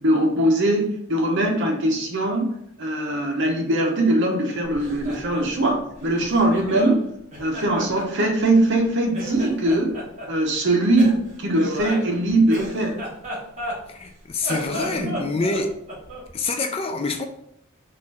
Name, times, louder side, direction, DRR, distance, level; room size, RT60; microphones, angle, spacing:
voice 1, 0.0-7.1 7.4-9.9 10.3-13.0 14.9-15.4, right 1 dB, 55° right, 2 dB, 0.9 m, -21 dB
Laughter, 4.7-7.0 7.3-8.8 9.1-10.3 11.0-14.1 14.4-16.3, equal, 35° right, 1.3 m, -33 dB
voice 2, 13.9-15.7 16.3-17.2, left 3 dB, 25° left, 6 dB, 0.3 m, -26 dB
4.2 x 2.5 x 4.1 m, 0.73 s
head